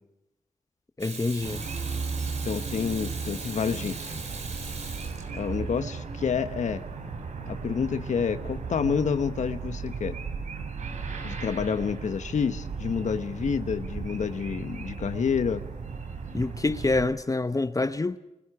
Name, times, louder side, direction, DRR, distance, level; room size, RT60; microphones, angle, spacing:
voice 1, 1.0-1.6 16.3-18.2, left 3 dB, 30° left, 0.9 m, -26 dB
Water tap faucet / Sink (filling or washing), 1.0-5.8 8.2-8.3, right 4 dB, 70° right, 4.2 m, -40 dB
sound 1, 1.4-17.1, right 5 dB, 85° right, 3.6 m, -36 dB
voice 2, 2.4-4.2 5.3-6.8 7.5-10.2 11.2-15.6, left 6 dB, 80° left, 1.1 m, -28 dB
29.0 x 29.0 x 4.9 m
cardioid pair, 65°, 12 cm